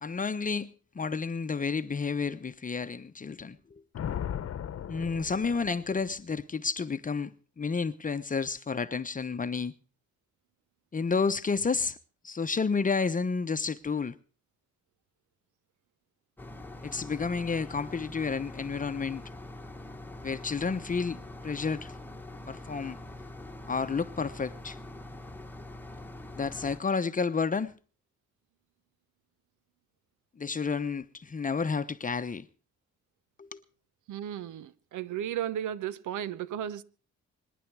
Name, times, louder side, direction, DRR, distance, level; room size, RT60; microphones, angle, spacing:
voice 1, 0.0-4.2 4.9-7.3 7.6-9.7 10.9-12.0 12.2-14.2 16.8-19.2 20.2-21.2 21.4-21.9 22.5-23.0 23.7-24.8 26.4-27.7 30.4-32.5 33.4-33.6, left 5 dB, 25° left, 0.9 m, -31 dB
Thunder, 3.9-6.1, left 9 dB, 50° left, 1.0 m, -37 dB
sound 1, 16.4-26.8, left 2 dB, 5° left, 1.3 m, -44 dB
voice 2, 34.1-36.8, right 10 dB, 80° right, 1.0 m, -34 dB
25.5 x 10.0 x 4.7 m
cardioid pair, 90°, 30 cm